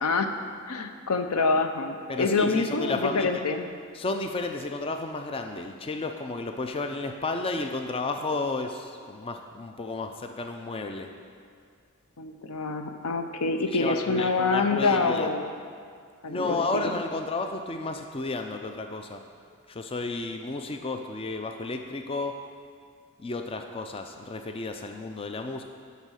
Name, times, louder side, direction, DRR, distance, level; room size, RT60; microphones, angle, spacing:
voice 1, 0.0-0.3 0.7-3.6 12.2-15.5 16.2-16.9, left 4 dB, 80° left, 7 dB, 0.7 m, -26 dB
voice 2, 2.1-3.5 3.9-11.1 13.7-15.4 16.2-19.2 19.7-22.3 23.2-25.6, left 3 dB, 25° left, 5 dB, 0.4 m, -32 dB
12.0 x 4.1 x 6.3 m, 2.2 s
head